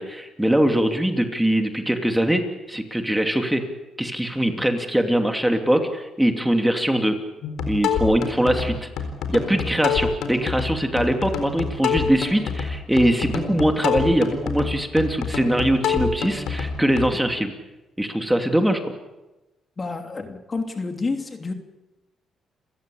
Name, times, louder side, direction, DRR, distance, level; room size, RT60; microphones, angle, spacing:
voice 1, 0.0-3.6 4.0-7.2 7.7-8.9 9.3-17.5 18.0-18.9, right 1 dB, 5° right, 5 dB, 2.8 m, -22 dB
sound 1, 7.4-17.1, left 6 dB, 80° left, 4.1 m, -27 dB
voice 2, 19.8-21.5, left 3 dB, 30° left, 5 dB, 2.9 m, -29 dB
30.0 x 15.5 x 8.7 m, 1.1 s
cardioid pair, 90°, 0 cm